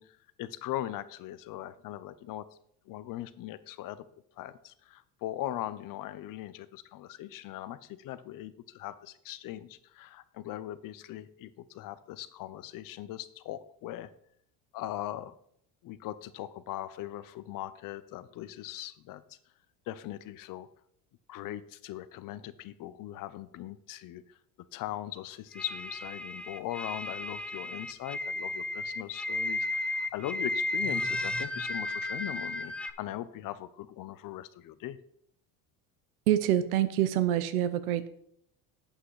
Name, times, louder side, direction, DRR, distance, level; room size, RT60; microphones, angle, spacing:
voice 1, 0.0-2.5 2.9-4.1 4.4-14.1 14.7-15.3 15.8-19.4 19.9-20.7 21.3-24.2 24.7-35.0, left 13 dB, 50° left, 15 dB, 0.7 m, -40 dB
sound 1, 25.5-32.9, left 2 dB, 5° left, 0.3 m, -34 dB
voice 2, 36.3-38.1, right 12 dB, 90° right, 13 dB, 0.8 m, -26 dB
8.3 x 5.9 x 4.8 m, 0.69 s
supercardioid pair, 95°, 42 cm